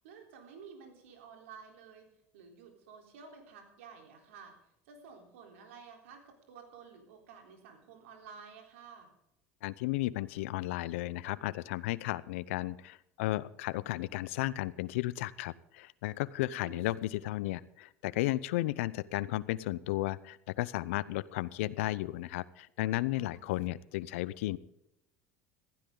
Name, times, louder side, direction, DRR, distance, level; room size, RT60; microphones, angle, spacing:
voice 1, 0.0-9.1 16.5-16.9 23.2-23.5, right 5 dB, 85° right, 3 dB, 3.7 m, -52 dB
voice 2, 9.6-24.6, left 17 dB, 80° left, 20 dB, 0.6 m, -34 dB
15.0 x 15.0 x 3.9 m, 0.82 s
supercardioid pair, 95°, 7 cm